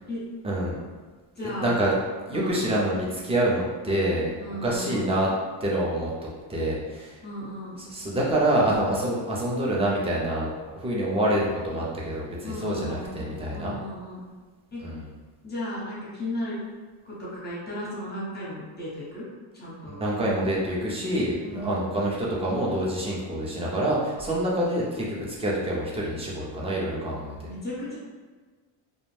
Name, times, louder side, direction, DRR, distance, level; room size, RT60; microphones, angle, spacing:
voice 1, 0.4-0.8 1.4-1.9 2.3-4.3 4.6-5.3 5.6-6.1 6.5-7.2 7.8-13.8 14.8-15.1 19.8-27.5, right 1 dB, 15° right, -4 dB, 0.4 m, -26 dB
voice 2, 1.4-1.8 2.3-2.7 4.4-5.2 7.2-7.9 12.4-14.2 14.7-14.8 15.4-16.6 17.0-19.3 19.5-20.0 21.4-21.9 27.4-28.0, left 1 dB, 20° left, -6 dB, 0.8 m, -35 dB
2.5 x 2.0 x 3.1 m, 1.4 s
cardioid pair, 130°, 48 cm